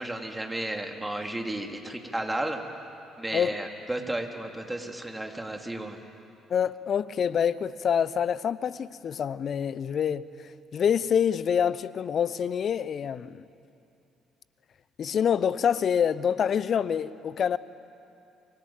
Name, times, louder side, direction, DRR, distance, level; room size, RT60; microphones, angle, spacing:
voice 1, 0.0-2.6 3.2-6.0, right 1 dB, 10° right, 3.3 m, -33 dB
voice 2, 6.5-10.3 10.7-13.4 15.0-17.6, left 8 dB, 50° left, 0.7 m, -26 dB
24.5 x 23.5 x 9.0 m
hypercardioid pair, 50°, 0 cm